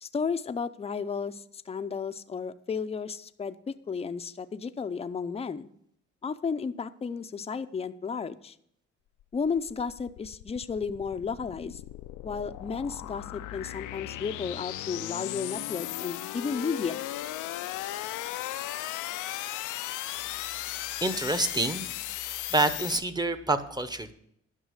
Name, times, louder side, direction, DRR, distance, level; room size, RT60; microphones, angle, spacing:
voice 1, 0.0-5.7 6.2-8.6 9.3-11.8 12.2-17.0, left 5 dB, 20° left, 10 dB, 0.5 m, -33 dB
sound 1, 9.2-23.0, left 15 dB, 80° left, 0.5 m, -36 dB
voice 2, 21.0-24.1, right 2 dB, 15° right, 11 dB, 0.9 m, -28 dB
11.0 x 6.0 x 6.4 m, 0.72 s
cardioid pair, 90°, 30 cm